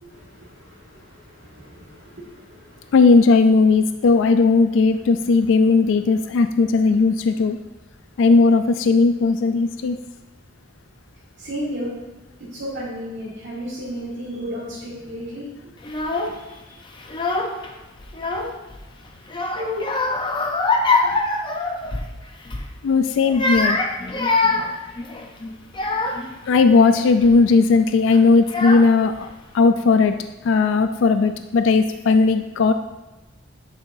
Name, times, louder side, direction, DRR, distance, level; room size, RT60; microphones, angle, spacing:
voice 1, 0.0-3.0 11.4-11.9 12.4-15.8 16.3-16.8 19.5-20.1 21.0-21.2, equal, 70° right, -9 dB, 1.8 m, -34 dB
voice 2, 2.9-7.6 8.2-10.0 22.8-23.8 26.5-29.3 29.5-30.2 30.4-32.7, left 4 dB, 75° left, 9 dB, 0.3 m, -16 dB
Child speech kid speaking / Crying sobbing, 15.8-16.4 17.0-17.7 18.0-18.8 19.3-22.1 22.5-22.7 23.2-26.4 27.0-27.4 28.1-28.2 28.5-29.2, left 3 dB, 25° left, 0.6 m, -24 dB
9.6 x 5.6 x 2.6 m, 1.1 s
head